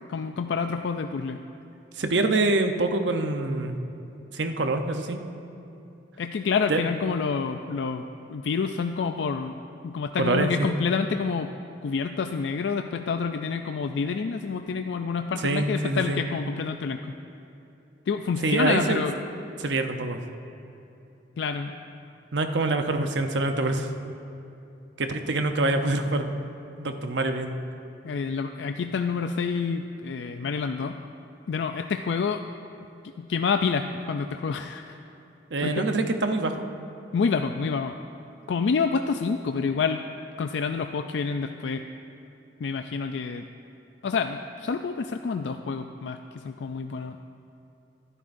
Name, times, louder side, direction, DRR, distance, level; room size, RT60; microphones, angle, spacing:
voice 1, 0.1-1.4 6.2-8.0 8.3-9.5 9.8-11.5 11.8-17.1 18.1-19.1 21.4-21.7 28.0-31.0 31.5-32.4 33.0-35.0 35.6-35.8 37.1-37.9 38.5-40.0 40.4-41.8 42.6-43.4 44.0-47.2, left 5 dB, 75° left, 6 dB, 0.4 m, -28 dB
voice 2, 2.0-3.8 4.3-5.2 6.7-6.8 10.2-10.8 15.4-16.2 18.4-19.0 19.6-20.2 22.3-23.9 25.0-26.3 26.8-27.5 35.5-36.7, right 2 dB, 80° right, 6 dB, 0.8 m, -25 dB
21.5 x 11.0 x 2.6 m, 2.9 s
head